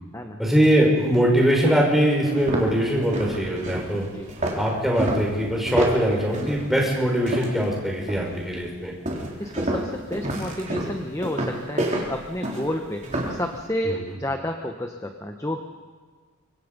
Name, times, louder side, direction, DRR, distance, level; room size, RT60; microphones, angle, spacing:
voice 1, 0.4-4.1 4.5-8.9 13.8-14.1, equal, ahead, -2 dB, 5.2 m, -22 dB
sound 1, 1.1-1.2 1.7-1.8 2.2-7.7 8.1-8.5 9.0-13.4, right 1 dB, 35° right, 3.8 m, -29 dB
voice 2, 9.4-15.6, left 1 dB, 15° left, 4 dB, 1.2 m, -30 dB
26.0 x 24.0 x 5.4 m, 1.5 s
head